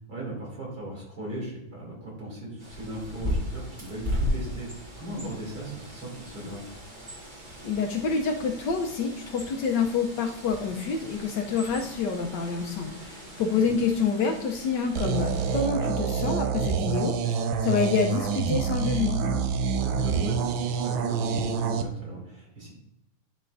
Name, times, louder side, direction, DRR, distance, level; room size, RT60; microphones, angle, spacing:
voice 1, 0.1-6.6 11.8-11.9 13.6-13.7 19.8-22.7, right 1 dB, 50° right, -4 dB, 3.1 m, -38 dB
Bird, 2.6-15.7, left 1 dB, 25° right, 1.7 m, -37 dB
voice 2, 7.6-19.2, left 5 dB, 70° left, 3 dB, 1.2 m, -27 dB
sound 1, 15.0-21.8, right 6 dB, 85° right, 1.4 m, -27 dB
10.5 x 4.3 x 2.5 m, 0.85 s
omnidirectional pair, 2.1 m